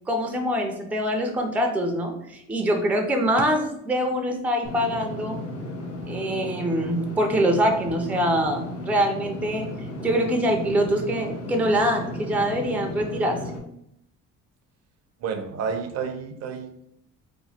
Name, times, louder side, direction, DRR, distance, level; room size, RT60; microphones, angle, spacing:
voice 1, 0.1-5.4 6.0-9.7 10.0-13.4, equal, 5° right, 3 dB, 0.4 m, -24 dB
Engine / Mechanisms, 4.6-13.6, left 1 dB, 50° left, 0.8 m, -35 dB
voice 2, 15.2-16.9, right 6 dB, 55° right, 6 dB, 0.5 m, -30 dB
3.0 x 2.2 x 4.1 m, 0.76 s
cardioid pair, 120°, 30 cm